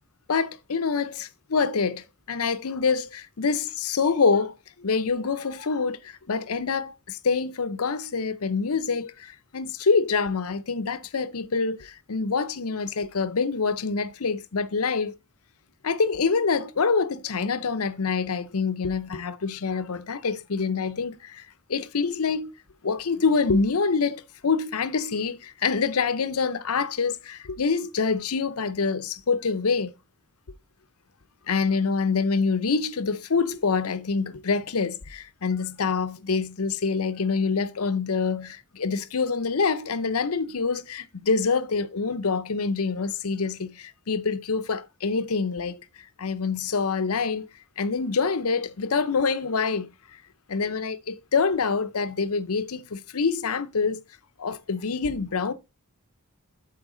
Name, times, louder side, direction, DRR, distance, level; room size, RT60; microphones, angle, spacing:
voice 1, 0.3-4.5 4.8-15.1 15.8-22.5 22.8-29.9 31.5-45.8 46.2-47.5 47.8-49.9 50.5-54.0 54.4-55.5, left 5 dB, 80° left, 0.7 m, -26 dB
12.0 x 4.6 x 3.9 m
head